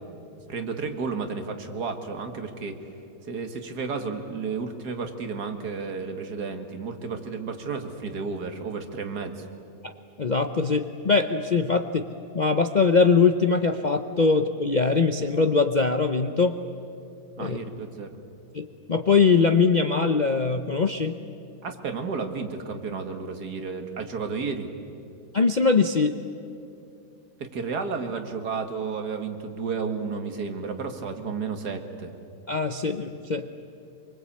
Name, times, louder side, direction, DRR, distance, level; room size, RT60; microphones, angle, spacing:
voice 1, 0.5-2.8 3.3-9.5 17.4-18.1 21.6-24.7 27.4-32.1, right 5 dB, 75° right, 6 dB, 2.3 m, -32 dB
voice 2, 10.2-12.0 12.3-16.6 17.4-17.6 18.5-21.2 25.3-26.2 32.5-33.5, left 4 dB, 45° left, 8 dB, 0.6 m, -22 dB
24.5 x 23.5 x 8.6 m, 2.7 s
omnidirectional pair, 1.7 m